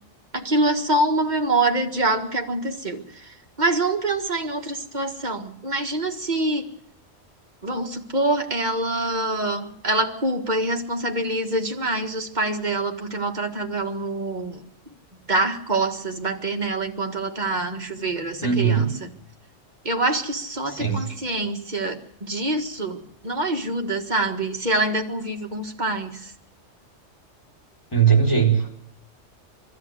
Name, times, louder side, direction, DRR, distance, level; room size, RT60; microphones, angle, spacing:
voice 1, 0.3-6.7 7.6-14.6 15.3-19.1 19.9-26.3, right 2 dB, 40° right, 3 dB, 1.9 m, -25 dB
voice 2, 18.4-18.9 20.7-21.1 27.9-28.7, right 7 dB, 20° left, -1 dB, 4.4 m, -19 dB
24.0 x 14.0 x 8.0 m, 0.76 s
omnidirectional pair, 1.2 m